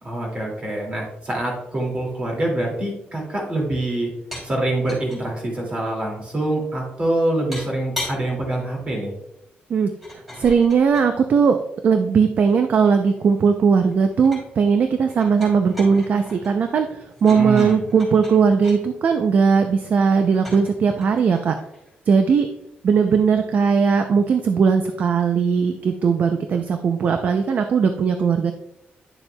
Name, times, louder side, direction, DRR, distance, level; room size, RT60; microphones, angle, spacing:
voice 1, 0.0-4.1 4.4-9.1 17.3-17.8, right 1 dB, 30° right, -1 dB, 2.2 m, -25 dB
sound 1, 4.3-4.5 4.8-5.2 7.5-8.2 10.0-11.1 12.1-13.3 13.7-14.6 15.1-18.8 20.3-22.3, left 1 dB, 5° right, 2.9 m, -38 dB
voice 2, 10.4-11.6 11.8-21.5 22.1-22.5 22.8-28.5, right 6 dB, 45° right, 7 dB, 0.4 m, -18 dB
9.9 x 6.9 x 2.2 m, 0.82 s
wide cardioid pair, 175°, 4 cm